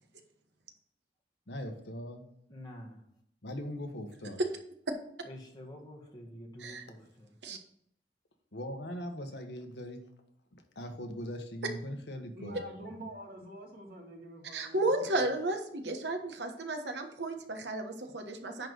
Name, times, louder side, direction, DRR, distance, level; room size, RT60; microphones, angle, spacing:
voice 1, 1.5-2.2 3.4-4.4 8.5-10.0 10.5-12.6, equal, 75° left, 5 dB, 1.3 m, -40 dB
voice 2, 2.5-3.0 5.2-7.3, left 1 dB, 25° left, -2 dB, 2.0 m, -48 dB
voice 3, 12.3-15.1, right 1 dB, 55° right, 0 dB, 2.1 m, -46 dB
voice 4, 14.5-18.7, right 2 dB, 75° right, 5 dB, 1.3 m, -33 dB
10.5 x 3.9 x 6.4 m, 0.73 s
head